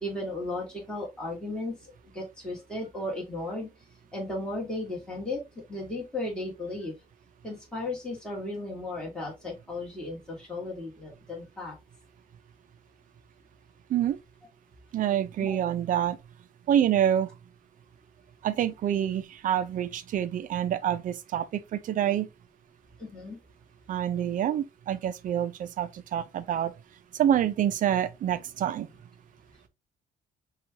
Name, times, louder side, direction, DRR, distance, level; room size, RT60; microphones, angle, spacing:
voice 1, 0.0-3.7 4.1-5.4 5.7-6.9 7.4-11.8 15.4-15.5 23.0-23.4, left 2 dB, 5° left, 1.8 m, -35 dB
voice 2, 14.9-16.2 16.7-17.3 18.4-22.3 23.9-26.7 27.1-28.9, right 10 dB, 50° right, 0.5 m, -27 dB
5.9 x 2.4 x 2.8 m
cardioid pair, 110°, 17 cm